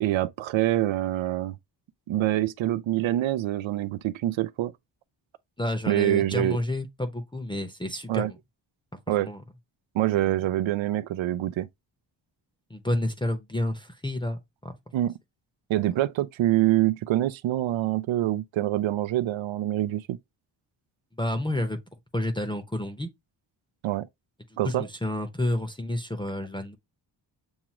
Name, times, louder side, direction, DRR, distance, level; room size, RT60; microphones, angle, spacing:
voice 1, 0.0-1.6 2.1-4.7 5.9-6.6 8.1-8.3 9.1-9.3 9.9-11.7 14.9-15.1 15.7-20.2 23.8-24.1 24.6-24.9, right 14 dB, 90° right, 0.6 m, -25 dB
voice 2, 5.6-8.4 9.2-9.4 10.2-10.4 12.7-14.7 21.2-21.8 22.1-23.1 24.6-26.8, left 1 dB, 10° left, 0.7 m, -30 dB
7.2 x 2.4 x 2.9 m
wide cardioid pair, 140°, 45 cm